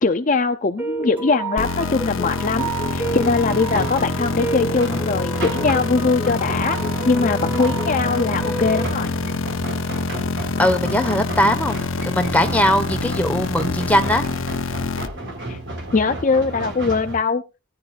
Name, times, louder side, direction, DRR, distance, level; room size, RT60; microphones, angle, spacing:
voice 1, 0.0-6.8 7.0-9.1 15.5-15.6 15.9-17.4, left 4 dB, 35° left, 8 dB, 0.5 m, -21 dB
sound 1, 0.8-8.8, right 3 dB, 10° right, 2.4 m, -30 dB
sound 2, 1.6-15.1, left 3 dB, 65° left, 0.8 m, -26 dB
sound 3, 2.6-17.2, right 1 dB, 55° right, 4.2 m, -32 dB
voice 2, 10.6-11.8 12.0-14.2, equal, 5° left, 5 dB, 1.3 m, -20 dB
18.0 x 10.5 x 2.5 m, 0.28 s
head